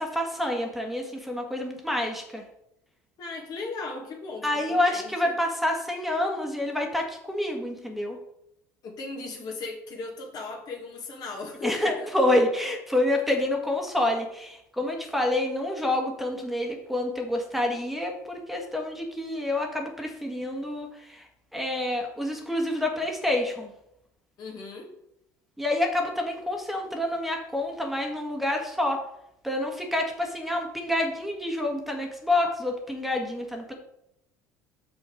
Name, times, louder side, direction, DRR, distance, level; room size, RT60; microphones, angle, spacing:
voice 1, 0.0-2.4 4.4-8.2 11.6-23.7 25.6-29.0 29.4-33.7, left 1 dB, ahead, 2 dB, 1.7 m, -28 dB
voice 2, 3.2-5.3 8.8-12.1 24.4-24.9, left 3 dB, 50° left, 1 dB, 2.3 m, -37 dB
6.2 x 6.0 x 5.2 m, 0.79 s
hypercardioid pair, 70°, 9 cm